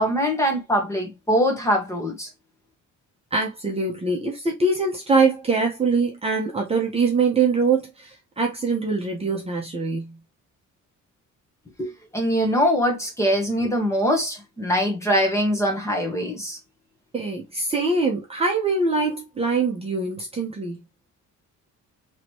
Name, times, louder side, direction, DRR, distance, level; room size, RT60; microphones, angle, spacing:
voice 1, 0.0-2.3 11.8-16.6, equal, 10° left, 1.1 m, -23 dB
voice 2, 3.3-10.2 17.1-20.8, right 4 dB, 20° right, 1.0 m, -23 dB
3.9 x 3.1 x 3.0 m
cardioid pair, 175°, 31 cm